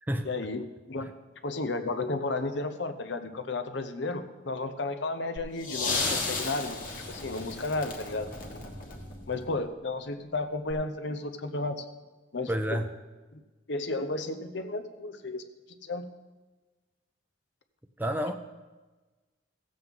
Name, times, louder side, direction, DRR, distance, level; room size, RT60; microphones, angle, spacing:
voice 1, 0.2-1.1 1.4-6.8 7.1-8.3 9.3-11.8 12.3-12.8 13.3-13.4 13.7-15.4 15.8-16.1, left 2 dB, 70° left, 8 dB, 0.8 m, -33 dB
sound 1, 5.4-9.5 10.7-10.8, left 3 dB, 45° left, 1.5 m, -34 dB
voice 2, 12.5-12.9 18.0-18.3, equal, 10° right, 7 dB, 0.4 m, -29 dB
16.0 x 7.7 x 3.7 m, 1.2 s
head